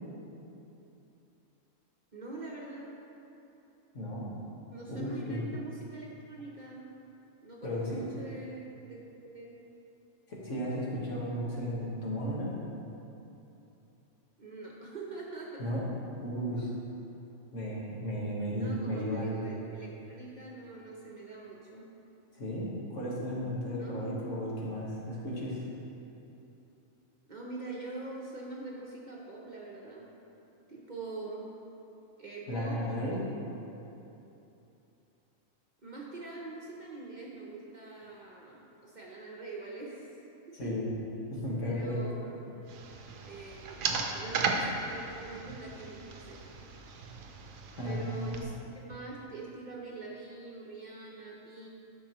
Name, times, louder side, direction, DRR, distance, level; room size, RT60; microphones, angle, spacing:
voice 1, 2.1-2.9 4.7-6.9 7.4-9.6 14.4-15.6 18.6-21.9 23.8-24.2 27.3-30.1 30.7-31.5 32.2-33.2 35.8-40.1 40.6-40.7 41.6-42.7 43.2-46.4 47.8-51.7, right 3 dB, 40° right, -4 dB, 0.8 m, -44 dB
voice 2, 3.9-4.3 4.9-5.4 7.6-8.0 10.3-12.5 15.6-15.8 16.2-16.7 17.5-19.4 22.3-25.6 32.5-33.2 40.5-40.9 41.3-42.0 47.8-48.5, equal, 65° left, -6 dB, 1.8 m, -34 dB
sound 1, 42.7-48.4, right 4 dB, 80° right, 1.1 m, -36 dB
11.5 x 5.4 x 3.0 m, 2.9 s
omnidirectional pair, 1.4 m